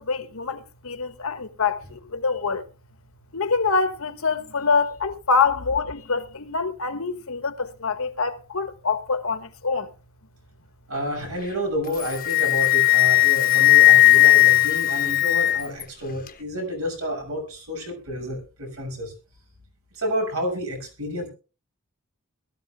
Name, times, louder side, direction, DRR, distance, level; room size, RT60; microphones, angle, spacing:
voice 1, 0.0-2.6 3.3-9.9, left 4 dB, 70° left, 1.3 m, -25 dB
voice 2, 10.9-19.1 19.9-21.3, equal, 80° right, 6.8 m, -30 dB
Wind instrument woodwind instrument, 11.9-15.8, left 17 dB, 40° left, 1.0 m, -17 dB
21.5 x 13.5 x 2.3 m
head